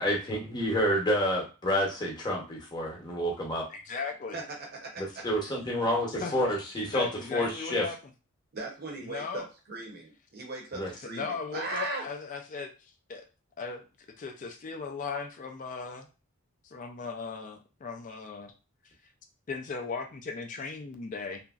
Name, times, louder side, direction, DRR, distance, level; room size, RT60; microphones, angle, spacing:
voice 1, 0.0-3.6 5.2-7.1 7.3-7.8 10.7-10.9, equal, 20° left, -2 dB, 0.8 m, -28 dB
voice 2, 3.7-4.4 6.2-6.4 6.9-8.0 9.0-9.4 11.0-13.3 13.6-13.9 14.2-16.1 16.6-18.5 18.8-18.9 19.5-21.4, left 4 dB, 35° left, 5 dB, 0.3 m, -37 dB
voice 3, 4.3-5.5 8.5-12.1, right 2 dB, 45° right, 0 dB, 0.7 m, -38 dB
2.9 x 2.5 x 2.3 m, 0.32 s
head